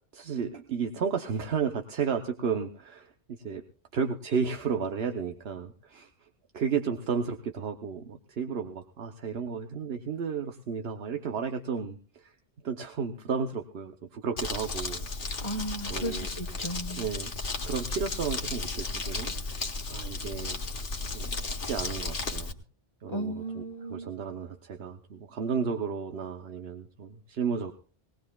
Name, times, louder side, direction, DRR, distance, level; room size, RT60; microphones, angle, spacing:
voice 1, 0.1-3.6 3.9-6.3 6.5-12.4 12.6-15.1 15.4-15.5 15.9-16.3 17.0-17.3 17.6-19.3 19.9-20.6 21.1-22.5 23.0-27.7, right 6 dB, 80° right, 6 dB, 1.1 m, -33 dB
Crumpling crinkling, 14.4-22.5, left 3 dB, 55° left, 1.4 m, -34 dB
voice 2, 15.4-17.0 23.1-24.1, right 1 dB, 30° left, 5 dB, 1.4 m, -35 dB
21.0 x 18.5 x 2.3 m, 0.39 s
omnidirectional pair, 1.0 m